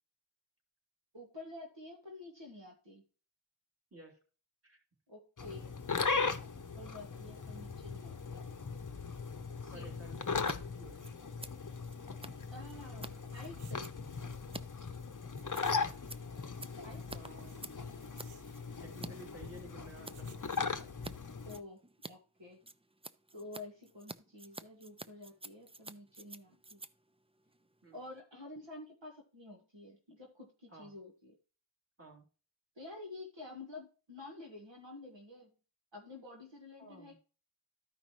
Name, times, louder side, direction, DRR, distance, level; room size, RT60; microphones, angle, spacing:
voice 1, 1.1-3.0 5.1-5.7 6.7-8.4 9.6-9.9 12.5-13.9 14.7-14.8 16.8-17.0 21.4-21.8 22.1-22.6 23.3-26.8 27.9-31.3 32.7-35.5 35.9-37.2, left 2 dB, 70° right, 0 dB, 1.6 m, -50 dB
sound 1, 5.4-21.6, left 5 dB, 40° left, 0.8 m, -39 dB
voice 2, 9.7-10.4 10.7-11.2 17.1-17.8 18.8-20.7 27.8-28.0 30.7-30.9 32.0-32.2 36.8-37.1, right 1 dB, 30° right, 0 dB, 2.9 m, -53 dB
Scissors, 10.4-10.6 10.8-19.1 19.4-20.2 20.5-21.1 21.4-28.2, right 2 dB, 15° right, 0.4 m, -50 dB
sound 2, 13.3-14.3 15.3-16.9 17.5-19.0 19.8-20.9, right 5 dB, 85° right, 0.7 m, -56 dB
13.5 x 5.3 x 3.1 m, 0.36 s
wide cardioid pair, 55°, 47 cm